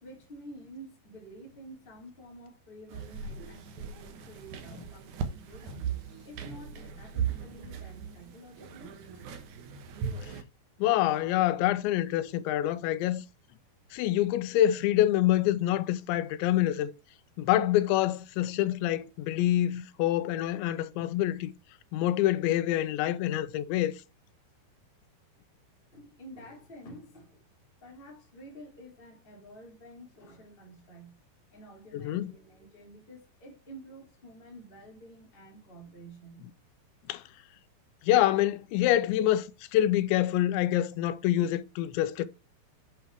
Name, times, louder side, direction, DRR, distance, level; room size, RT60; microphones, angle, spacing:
voice 1, 0.0-5.9 6.2-9.3 25.9-27.4 27.8-31.2 31.5-36.5 36.9-37.1, right 1 dB, 15° left, 2.6 m, -50 dB
sound 1, 2.9-10.4, right 7 dB, 70° right, 1.8 m, -38 dB
voice 2, 10.8-13.2 13.9-16.9 17.4-21.5 21.9-24.0 31.9-32.3 37.1-37.2 38.0-42.3, left 13 dB, 90° left, 3.0 m, -26 dB
7.9 x 5.7 x 4.7 m
omnidirectional pair, 5.1 m